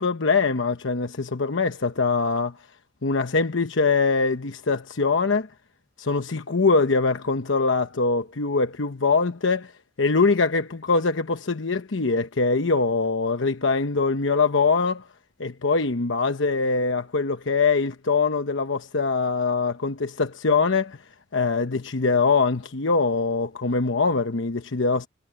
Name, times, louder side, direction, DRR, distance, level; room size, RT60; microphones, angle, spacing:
voice 1, 0.0-2.6 3.0-5.5 6.0-9.7 10.0-15.1 15.4-21.0 21.3-25.1, left 4 dB, 80° left, 1.0 m, -23 dB
head